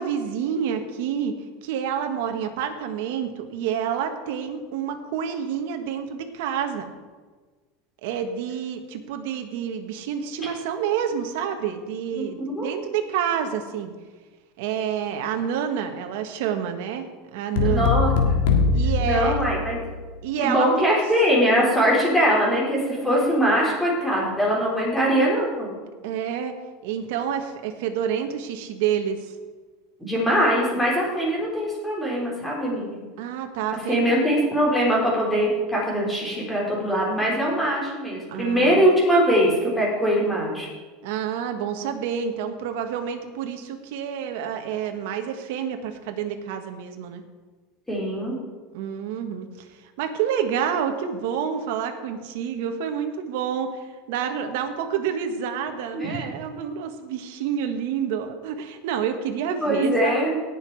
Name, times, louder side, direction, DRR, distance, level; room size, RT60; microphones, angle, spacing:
voice 1, 0.0-1.3 1.6-6.9 8.0-13.9 14.6-17.9 18.7-19.4 20.2-20.7 26.0-26.5 26.8-29.3 33.2-34.2 38.3-38.9 41.0-47.2 48.7-49.5 50.0-60.3, right 8 dB, 70° right, 6 dB, 1.5 m, -28 dB
voice 2, 12.2-12.7 17.6-18.1 19.0-19.8 20.4-25.7 30.0-33.0 33.9-40.7 47.9-48.4 55.9-56.3 59.6-60.4, equal, 5° left, -4 dB, 3.9 m, -22 dB
sound 1, 17.6-20.1, left 4 dB, 80° left, 1.8 m, -22 dB
18.5 x 6.8 x 4.8 m, 1.4 s
supercardioid pair, 145°, 0 cm